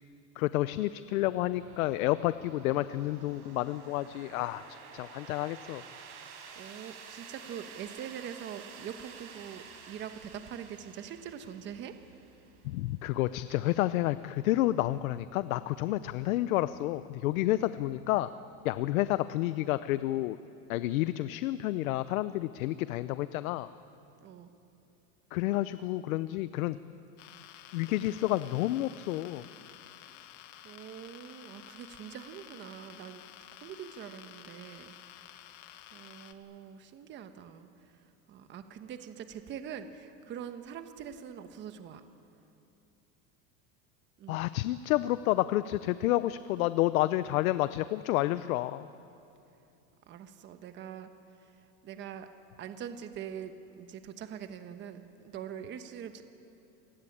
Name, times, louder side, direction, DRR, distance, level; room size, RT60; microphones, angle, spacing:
voice 1, 0.4-5.8 12.6-18.3 18.6-20.4 20.7-23.7 25.3-26.8 27.7-29.4 44.3-48.9, left 16 dB, 80° left, 14 dB, 0.8 m, -30 dB
sound 1, 1.1-19.7, right 6 dB, 60° right, 5.3 m, -52 dB
voice 2, 6.6-11.9 24.2-24.5 30.6-33.2 33.6-35.0 35.9-37.7 38.3-42.0 44.2-44.4 50.1-51.1 51.8-52.3 52.6-56.2, right 8 dB, 25° right, 8 dB, 1.2 m, -43 dB
sound 2, 27.2-36.3, left 12 dB, 55° left, 1.5 m, -52 dB
27.5 x 19.0 x 8.7 m, 2.8 s
supercardioid pair, 155°, 41 cm